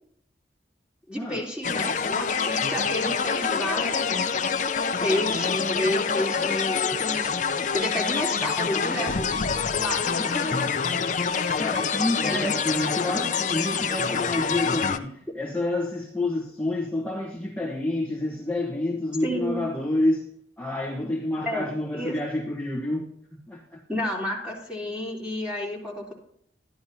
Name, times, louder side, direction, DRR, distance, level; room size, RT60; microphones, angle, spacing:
voice 1, 1.1-4.4 5.0-7.3 7.7-9.3 9.7-10.6 12.3-12.4 19.2-19.6 21.4-22.2 23.9-26.1, left 1 dB, 5° right, 3.5 m, -30 dB
sound 1, 1.6-15.0, left 6 dB, 45° left, 0.6 m, -26 dB
voice 2, 10.1-10.8 11.2-20.3 20.6-23.8, left 1 dB, 10° left, 1.2 m, -29 dB
13.5 x 11.0 x 2.8 m
head